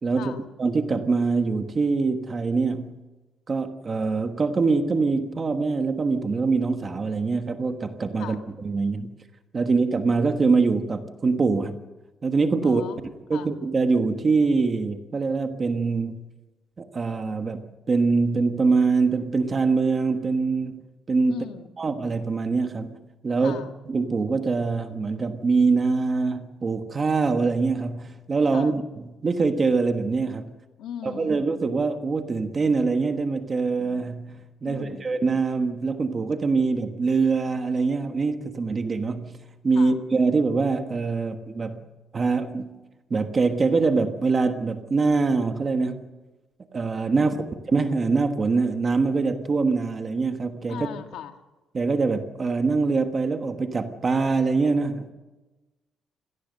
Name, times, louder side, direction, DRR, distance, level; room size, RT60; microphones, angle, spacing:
voice 1, 0.0-3.0 3.5-9.1 9.5-11.8 12.2-12.8 13.3-16.2 16.8-20.8 21.1-21.4 21.8-23.0 23.2-23.6 23.9-30.5 31.0-39.4 39.6-41.8 42.1-42.7 43.1-46.1 46.7-50.9 51.7-55.1, right 4 dB, 25° right, 7 dB, 1.3 m, -24 dB
voice 2, 12.6-13.0 13.3-13.5 21.3-21.7 23.4-23.7 28.5-28.7 30.8-31.4 34.6-35.2 39.7-40.0 47.1-47.6 50.7-51.4, left 9 dB, 90° left, 7 dB, 1.7 m, -38 dB
26.0 x 18.0 x 6.6 m, 1.1 s
cardioid pair, 180°, 0 cm